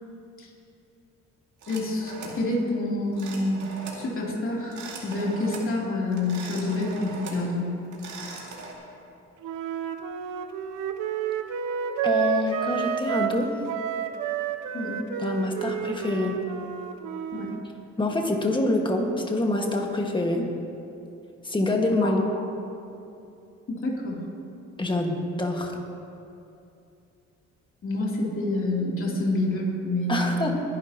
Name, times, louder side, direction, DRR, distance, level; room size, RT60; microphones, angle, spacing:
sound 1, 1.6-2.4 3.1-4.0 4.6-5.7 6.1-7.5 7.8-8.7, right 4 dB, 70° right, 2.5 m, -40 dB
voice 1, 1.7-3.6 3.9-7.7 14.7-15.0 17.3-17.5 22.0-22.1 23.7-24.2 27.8-30.5, left 2 dB, 45° left, -3 dB, 3.1 m, -27 dB
Wind instrument woodwind instrument, 9.4-13.4 13.7-17.6, right 8 dB, 90° right, 0.8 m, -30 dB
voice 2, 12.0-13.5 15.2-16.4 18.0-20.5 21.4-22.2 24.8-25.8 30.1-30.5, left 1 dB, 15° left, 2 dB, 1.7 m, -26 dB
21.5 x 11.0 x 2.9 m, 2.7 s
cardioid pair, 110°, 30 cm